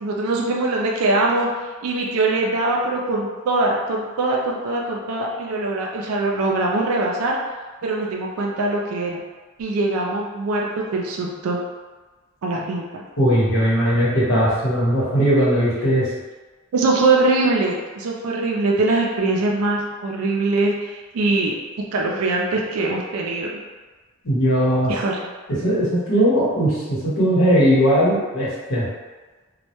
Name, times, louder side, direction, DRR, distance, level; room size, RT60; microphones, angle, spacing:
voice 1, 0.0-1.5 1.8-7.4 7.8-9.2 9.6-11.6 12.4-13.0 16.7-21.5 21.9-23.5 24.9-25.2, right 2 dB, 85° right, -1 dB, 0.4 m, -22 dB
voice 2, 13.2-16.1 24.2-24.9 25.6-28.9, equal, 70° left, -8 dB, 1.0 m, -18 dB
2.1 x 2.1 x 2.9 m, 1.3 s
head